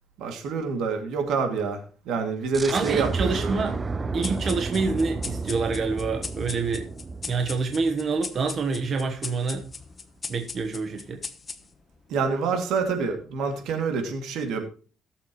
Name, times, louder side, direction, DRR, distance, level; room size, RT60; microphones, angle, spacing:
voice 1, 0.2-3.6 12.1-14.6, right 5 dB, 85° right, 5 dB, 2.5 m, -27 dB
sound 1, 2.5-8.0, right 3 dB, 25° right, 0.7 m, -32 dB
voice 2, 2.7-3.7 4.1-6.9 7.3-9.7 10.3-11.2, right 4 dB, 40° right, 4 dB, 1.2 m, -27 dB
sound 2, 4.2-12.0, left 4 dB, 30° left, 1.1 m, -40 dB
18.0 x 7.4 x 3.1 m, 0.38 s
cardioid pair, 130°, 0 cm